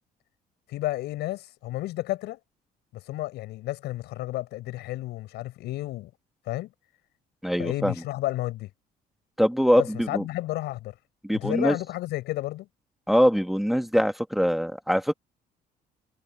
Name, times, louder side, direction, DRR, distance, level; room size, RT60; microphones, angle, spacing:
voice 1, 0.7-2.4 2.9-6.1 6.5-6.7 7.6-8.7 9.7-10.9 11.3-12.7, left 16 dB, 80° left, 6.1 m, -32 dB
voice 2, 7.4-7.9 9.4-10.2 11.2-11.8 13.1-15.1, equal, ahead, 1.7 m, -23 dB
cardioid pair, 110°, 17 cm